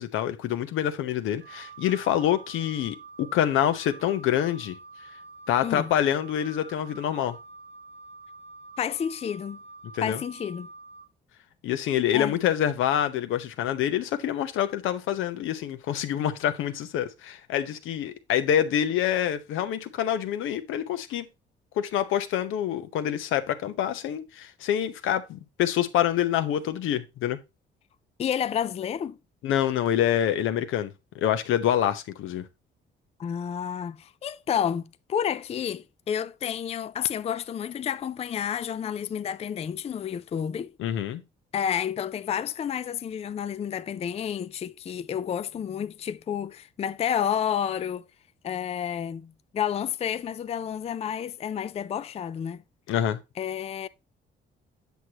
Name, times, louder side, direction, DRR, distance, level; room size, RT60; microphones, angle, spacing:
voice 1, 0.0-4.8 5.5-7.4 9.9-10.2 11.6-21.2 21.8-27.4 29.4-32.4 40.8-41.2 52.9-53.2, left 10 dB, 85° left, 0.8 m, -26 dB
Wind instrument woodwind instrument, 1.4-11.0, right 3 dB, 75° right, 1.6 m, -47 dB
voice 2, 8.8-9.6 10.0-10.7 12.1-12.4 28.2-29.2 33.2-40.7 41.5-48.0 48.4-52.6 53.4-53.9, left 8 dB, 30° left, 0.4 m, -30 dB
8.1 x 6.3 x 2.9 m
cardioid pair, 90°, 20 cm